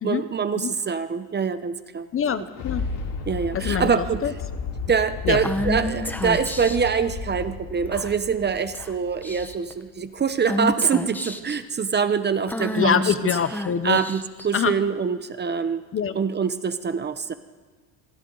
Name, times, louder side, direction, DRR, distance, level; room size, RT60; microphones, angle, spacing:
voice 1, 0.0-2.1 3.3-4.2 4.9-13.4 13.8-15.8 16.1-17.3, right 6 dB, 20° right, 11 dB, 0.8 m, -24 dB
Thunder, 2.1-9.7 10.2-10.3, left 4 dB, 60° left, 3.7 m, -33 dB
voice 2, 2.1-2.8 3.5-3.9 4.2-4.3 5.2-5.4 12.7-14.0 14.5-14.8 15.9-16.2, left 8 dB, 30° left, 12 dB, 0.8 m, -24 dB
Female speech woman speaking / Whispering, 5.4-6.9 7.9-8.3 8.7-8.9 9.2-9.7 10.5-11.6 12.5-14.5, left 1 dB, 5° left, 1.1 m, -29 dB
26.0 x 25.5 x 4.0 m, 1.4 s
cardioid pair, 130°, 46 cm